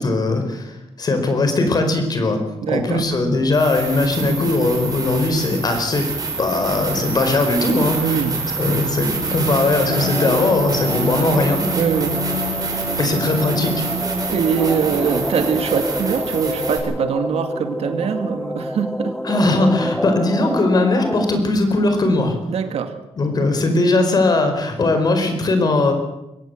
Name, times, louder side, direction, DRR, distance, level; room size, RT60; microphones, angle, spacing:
voice 1, 0.0-2.4 2.7-6.1 6.4-8.1 8.6-11.6 13.0-13.9 19.2-22.4 23.2-25.9, left 2 dB, 40° left, 6 dB, 4.7 m, -19 dB
voice 2, 2.6-3.1 8.0-8.4 11.7-12.8 14.3-19.2 22.5-23.0, right 7 dB, 75° right, 8 dB, 2.2 m, -23 dB
sound 1, 2.8-2.9 3.5-16.8, right 4 dB, 35° right, 5.6 m, -27 dB
sound 2, 9.2-14.2, left 1 dB, 75° left, 7.1 m, -30 dB
sound 3, 9.9-21.4, left 1 dB, 5° left, 0.9 m, -28 dB
23.0 x 17.0 x 7.8 m, 0.89 s
wide cardioid pair, 155°, 10 cm